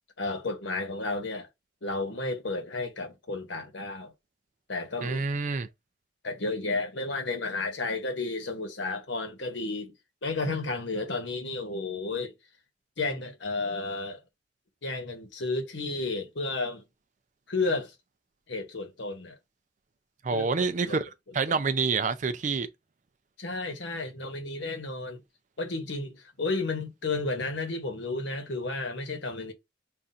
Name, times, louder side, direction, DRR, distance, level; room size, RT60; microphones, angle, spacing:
voice 1, 0.2-1.5 1.8-4.1 4.7-5.2 6.2-9.9 10.2-12.3 13.0-14.2 14.8-16.8 17.5-17.9 18.5-19.4 20.3-20.5 20.8-21.0 21.5-21.6 23.4-25.2 25.6-29.5, left 3 dB, 70° left, 1.1 m, -32 dB
voice 2, 5.0-5.7 20.2-22.7, right 4 dB, 40° right, 0.4 m, -27 dB
5.6 x 2.4 x 2.6 m
head